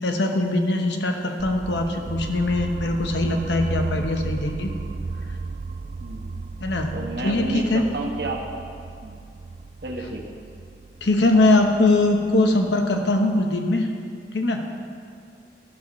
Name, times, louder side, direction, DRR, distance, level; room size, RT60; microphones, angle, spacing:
voice 1, 0.0-4.7 6.6-7.8 11.0-13.9 14.3-14.6, left 2 dB, 85° left, 3 dB, 1.1 m, -21 dB
sound 1, 1.4-13.3, right 3 dB, 40° right, 0.3 m, -34 dB
voice 2, 6.0-6.3 6.9-8.5 9.0-9.2 9.8-10.2, right 2 dB, 65° right, 1 dB, 1.4 m, -31 dB
13.0 x 12.5 x 3.2 m, 2.3 s
head